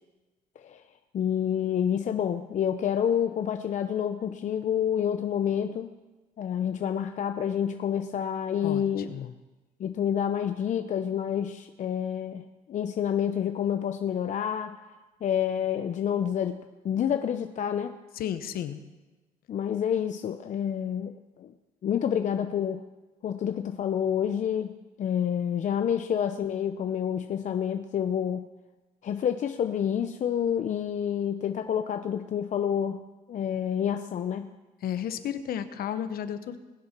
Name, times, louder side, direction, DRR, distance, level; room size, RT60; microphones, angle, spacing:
voice 1, 1.1-5.9 6.4-9.1 9.8-14.8 15.2-16.6 16.8-18.0 19.5-21.5 21.8-22.8 23.2-28.5 29.0-34.5, left 9 dB, 45° left, 8 dB, 0.6 m, -28 dB
voice 2, 18.2-18.8 34.8-36.6, left 9 dB, 60° left, 11 dB, 1.0 m, -33 dB
20.5 x 7.6 x 5.9 m, 1.2 s
cardioid pair, 110°, 17 cm